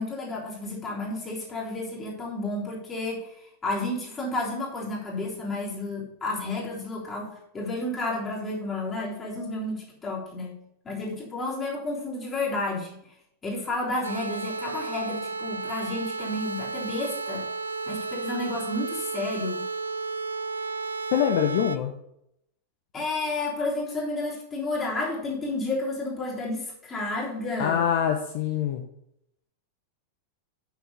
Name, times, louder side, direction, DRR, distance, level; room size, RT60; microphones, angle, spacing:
voice 1, 0.0-10.6 10.8-13.0 13.4-17.5 17.9-19.7 22.9-27.9, left 2 dB, 20° left, -4 dB, 3.6 m, -31 dB
sound 1, 14.0-21.8, right 4 dB, 75° right, 0.4 m, -33 dB
voice 2, 21.1-21.9 27.6-28.9, left 9 dB, 50° left, 5 dB, 0.8 m, -24 dB
8.4 x 6.3 x 5.2 m, 0.78 s
figure-of-eight pair, 90°, 0 cm